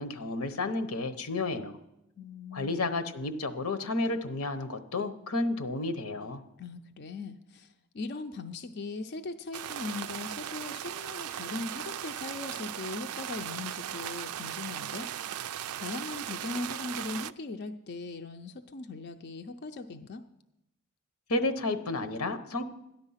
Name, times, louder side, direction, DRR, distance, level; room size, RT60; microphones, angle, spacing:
voice 1, 0.0-1.8 2.5-6.4 21.3-22.6, left 2 dB, 90° left, 9 dB, 1.0 m, -31 dB
voice 2, 2.2-2.9 6.6-15.4 15.8-20.2, left 3 dB, 50° left, 6 dB, 0.5 m, -39 dB
sound 1, 9.5-17.3, right 11 dB, 90° right, 0.4 m, -37 dB
13.5 x 10.5 x 5.7 m, 0.89 s
head